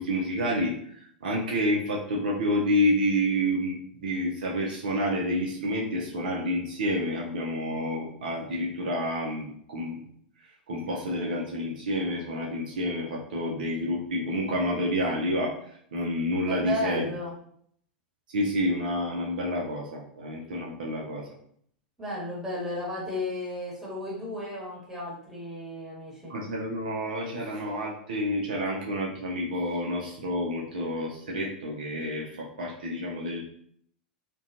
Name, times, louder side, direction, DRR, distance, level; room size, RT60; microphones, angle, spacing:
voice 1, 0.0-10.0 10.7-17.1 18.3-21.3 26.3-33.4, equal, 65° right, -2 dB, 0.5 m, -29 dB
voice 2, 16.5-17.3 22.0-26.3, equal, 5° right, -7 dB, 1.2 m, -34 dB
2.4 x 2.2 x 2.7 m, 0.64 s
figure-of-eight pair, 90°, 5 cm